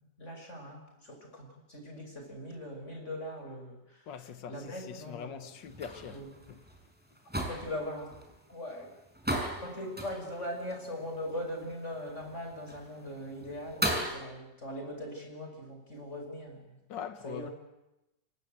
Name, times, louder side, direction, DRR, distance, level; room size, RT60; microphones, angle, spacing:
voice 1, 0.2-4.0 4.5-5.5 6.1-6.3 7.4-8.1 8.5-8.9 9.6-16.8 17.2-17.5, left 1 dB, 40° left, 6.8 m, -40 dB
voice 2, 4.1-6.2 6.5-6.6 16.9-17.5, left 8 dB, 80° left, 1.9 m, -42 dB
sound 1, 5.4-14.2, right 1 dB, 5° right, 5.6 m, -38 dB
29.5 x 25.0 x 8.1 m
omnidirectional pair, 1.9 m